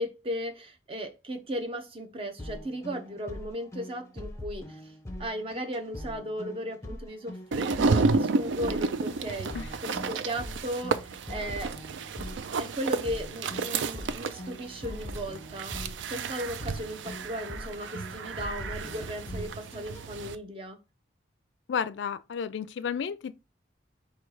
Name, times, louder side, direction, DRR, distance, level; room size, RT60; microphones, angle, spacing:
voice 1, 0.0-4.8 5.2-11.7 12.5-15.8 16.1-20.8, equal, 30° right, 0.7 m, -36 dB
sound 1, 2.4-20.1, left 1 dB, 15° left, 0.6 m, -42 dB
sound 2, 7.5-20.3, right 4 dB, 80° right, 0.4 m, -31 dB
voice 2, 21.7-23.3, left 7 dB, 75° left, 0.3 m, -32 dB
4.4 x 2.3 x 4.7 m
head